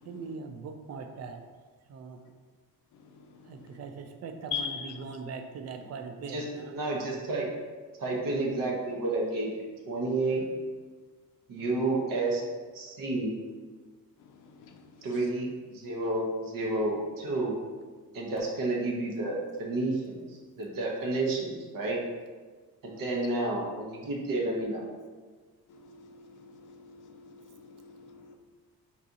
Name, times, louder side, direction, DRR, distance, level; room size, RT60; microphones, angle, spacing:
voice 1, 0.0-1.4 1.9-2.2 3.5-6.7, right 5 dB, 45° right, 6 dB, 0.4 m, -41 dB
voice 2, 4.5-4.9 26.0-26.1 26.7-28.3, left 7 dB, 55° left, 4 dB, 0.5 m, -39 dB
voice 3, 6.2-7.5 8.0-9.5 9.9-10.4 11.5-12.4 12.7-13.3 15.0-17.6 18.1-22.0 22.8-24.8, right 2 dB, 60° right, -2 dB, 0.9 m, -30 dB
4.1 x 2.8 x 3.6 m, 1.4 s
cardioid pair, 165°, 37 cm